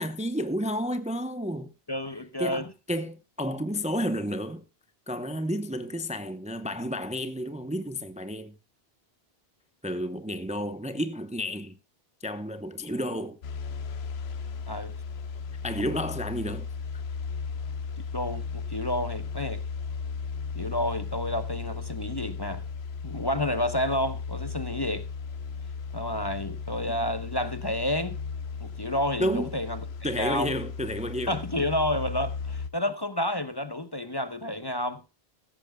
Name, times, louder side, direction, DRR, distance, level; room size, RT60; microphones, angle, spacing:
voice 1, 0.0-1.7 2.4-4.6 5.1-8.5 9.8-11.7 12.2-13.4 15.6-16.7 29.2-29.5 30.0-31.4, equal, 10° right, 0.7 m, -31 dB
voice 2, 1.9-2.7 14.7-14.9 18.1-19.6 20.5-22.6 23.0-25.1 25.9-28.2 28.6-30.5 31.3-35.0, left 1 dB, 25° left, 0.9 m, -30 dB
sound 1, 13.4-32.7, left 5 dB, 85° left, 1.1 m, -36 dB
16.0 x 14.0 x 2.2 m
omnidirectional pair, 1.0 m